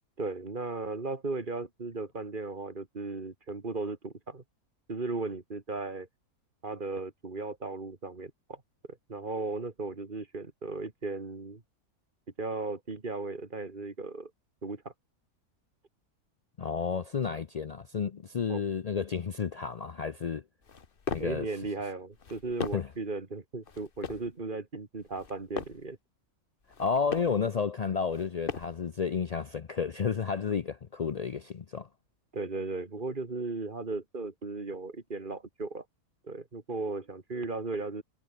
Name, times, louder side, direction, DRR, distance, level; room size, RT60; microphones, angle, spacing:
voice 1, 0.2-4.4 4.9-6.1 6.6-8.6 8.9-11.6 12.4-14.3 14.6-14.9 18.5-18.6 21.2-26.0 32.3-35.9 36.2-38.0, right 3 dB, 35° right, 2.2 m, -36 dB
voice 2, 16.6-20.4 21.1-21.5 22.7-22.9 26.8-31.9, left 6 dB, 80° left, 0.3 m, -31 dB
sound 1, 20.6-21.4 22.1-23.0 23.6-24.3 25.0-25.9 26.6-27.4 28.1-28.9, left 5 dB, 40° left, 1.4 m, -39 dB
omnidirectional pair, 1.6 m